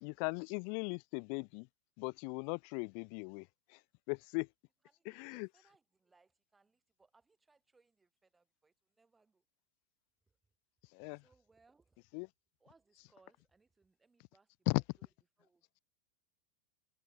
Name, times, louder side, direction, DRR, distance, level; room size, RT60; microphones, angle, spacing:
voice 1, 0.0-1.7 2.0-3.8 4.1-4.5 5.1-5.5 10.9-11.2 12.1-12.3 14.7-14.8, left 40 dB or more, 45° left, 0.5 m, -38 dB
voice 2, 4.8-9.4 10.3-10.4 11.2-12.0 12.6-15.1 15.4-15.6, right 4 dB, 10° right, 3.9 m, -71 dB
figure-of-eight pair, 90°, 0 cm